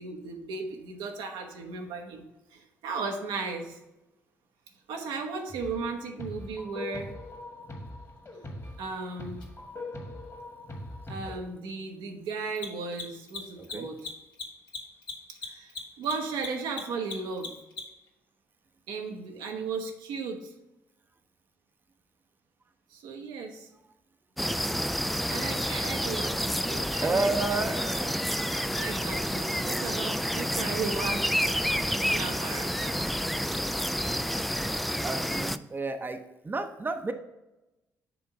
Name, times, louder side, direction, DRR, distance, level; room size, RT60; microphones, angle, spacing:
voice 1, 0.0-2.2 2.5-3.8 4.9-7.1 8.8-9.4 11.1-14.1 15.4-17.5 18.9-20.5 22.9-23.7 25.3-27.8 28.7-31.3 32.0-33.0, right 4 dB, 75° right, 3 dB, 0.9 m, -36 dB
sound 1, 5.5-5.9 6.2-11.4, left 1 dB, 35° left, 1.7 m, -41 dB
Mechanisms, 9.4-9.5 12.5-18.1, left 4 dB, 65° left, 1.5 m, -38 dB
voice 2, 13.6-13.9 26.2-26.4 27.0-28.1 35.0-36.2 36.4-37.1, right 3 dB, 25° right, 7 dB, 0.7 m, -31 dB
sound 2, 24.4-35.6, equal, ahead, 0.3 m, -29 dB
7.0 x 3.6 x 5.0 m, 0.96 s
hypercardioid pair, 45°, 8 cm